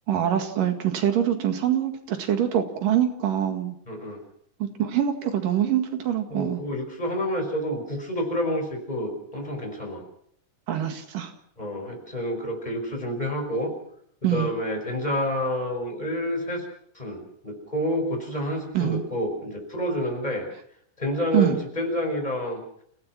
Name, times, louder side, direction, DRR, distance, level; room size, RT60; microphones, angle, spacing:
voice 1, 0.1-3.8 4.6-6.6 10.7-11.3 14.2-14.5 18.7-19.0 21.3-21.6, right 10 dB, 90° right, 6 dB, 3.7 m, -24 dB
voice 2, 3.9-4.2 6.3-10.0 11.6-13.7 14.3-16.6 17.0-20.5 21.0-22.6, equal, 10° left, 2 dB, 5.5 m, -29 dB
29.5 x 16.5 x 6.0 m, 0.65 s
omnidirectional pair, 3.7 m